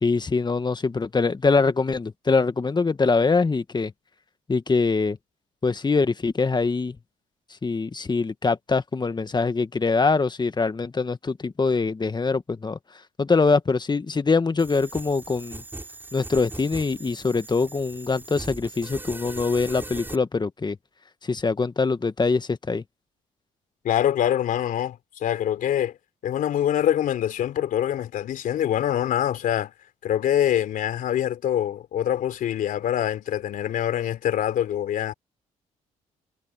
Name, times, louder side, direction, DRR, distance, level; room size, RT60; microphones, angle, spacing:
voice 1, 0.0-3.9 4.5-5.2 5.6-6.9 7.6-12.8 13.2-15.6 16.1-20.8 21.3-22.8, left 4 dB, 30° left, 1.6 m, -23 dB
sound 1, 14.6-20.2, right 2 dB, 15° right, 5.5 m, -39 dB
voice 2, 23.8-26.0 26.2-29.7 30.0-35.1, left 10 dB, 70° left, 3.7 m, -24 dB
supercardioid pair, 55°, 15 cm